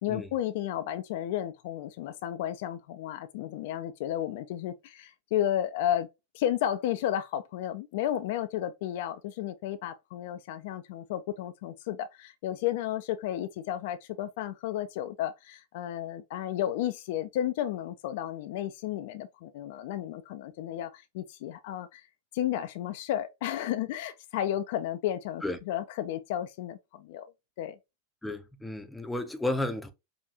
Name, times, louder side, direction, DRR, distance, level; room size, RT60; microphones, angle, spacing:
voice 1, 0.0-6.1 6.3-22.1 22.3-27.3 27.6-27.8, left 11 dB, 50° left, 0.4 m, -33 dB
voice 2, 28.2-29.9, left 1 dB, 5° left, 0.6 m, -32 dB
4.9 x 2.6 x 2.7 m
figure-of-eight pair, 90°, 0 cm